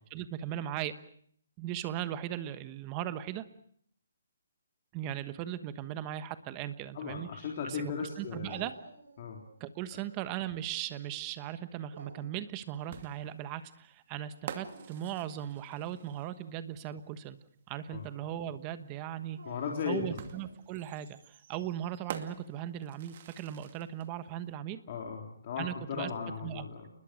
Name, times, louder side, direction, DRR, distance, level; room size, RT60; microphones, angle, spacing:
voice 1, 0.1-0.9 1.6-3.4 4.9-7.3 7.6-8.7 9.6-17.4 17.7-19.4 19.9-24.8 25.6-26.1 26.4-26.6, right 11 dB, 20° right, 12 dB, 1.3 m, -38 dB
voice 2, 6.9-8.7 9.2-9.4 17.9-18.1 19.5-20.2 24.9-26.9, left 6 dB, 30° left, 0 dB, 3.7 m, -37 dB
Dog, 8.5-9.6 10.0-10.7 11.7-12.5 14.4-15.1 19.3-20.7, right 3 dB, 80° right, 6.4 m, -50 dB
sound 1, 12.9-16.6 18.0-18.1 20.2-24.1, right 8 dB, 35° right, 2.4 m, -47 dB
30.0 x 21.0 x 6.5 m, 0.63 s
hypercardioid pair, 170°, 0 cm